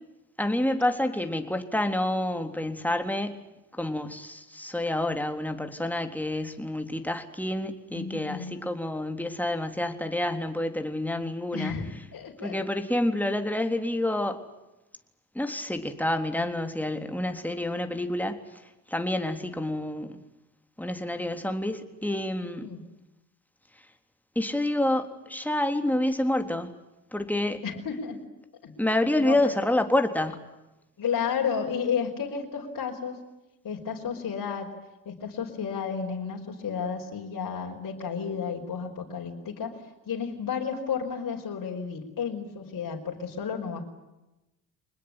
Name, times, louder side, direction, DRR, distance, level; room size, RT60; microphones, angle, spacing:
voice 1, 0.4-3.4 3.8-11.7 12.4-14.4 15.4-18.4 18.9-20.2 20.8-22.7 24.4-26.7 27.1-27.6 28.8-30.4, left 1 dB, 5° left, 6 dB, 3.7 m, -28 dB
voice 2, 7.9-8.6 11.5-12.6 22.6-22.9 27.6-28.2 28.6-28.7 29.2-29.6 31.0-33.2 33.6-34.7 35.1-39.8 40.1-43.8, left 6 dB, 50° left, 0 dB, 5.2 m, -32 dB
25.5 x 20.5 x 10.0 m, 0.97 s
hypercardioid pair, 55°, 42 cm